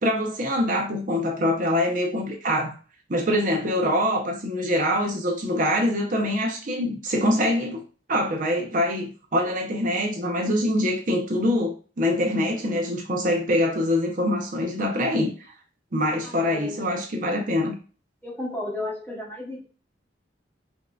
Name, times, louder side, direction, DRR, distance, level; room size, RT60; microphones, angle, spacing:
voice 1, 0.0-2.7 3.1-7.8 8.1-15.5 15.9-17.8, left 1 dB, 40° right, 0.6 m, -24 dB
voice 2, 16.2-16.9 18.2-19.6, left 1 dB, 10° left, 0.9 m, -33 dB
5.2 x 2.6 x 2.3 m
head